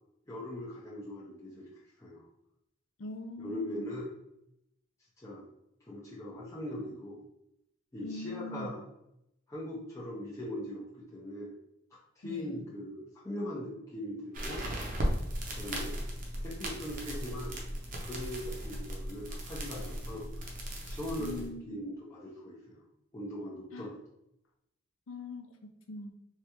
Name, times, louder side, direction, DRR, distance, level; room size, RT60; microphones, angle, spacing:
voice 1, 0.3-1.7 2.0-2.3 3.4-4.1 5.2-5.4 5.9-7.2 7.9-8.8 9.5-11.5 12.2-14.6 15.5-15.9 16.4-17.6 18.0-20.3 20.8-22.8 23.1-24.0, left 1 dB, 15° left, -7 dB, 0.5 m, -40 dB
voice 2, 3.0-3.9 8.0-8.7 12.2-12.5 21.2-21.8 23.7-23.9 25.1-26.1, left 2 dB, 80° left, 5 dB, 0.5 m, -42 dB
sound 1, 14.3-21.5, equal, 45° right, 0.6 m, -37 dB
3.2 x 2.3 x 2.9 m, 0.82 s
head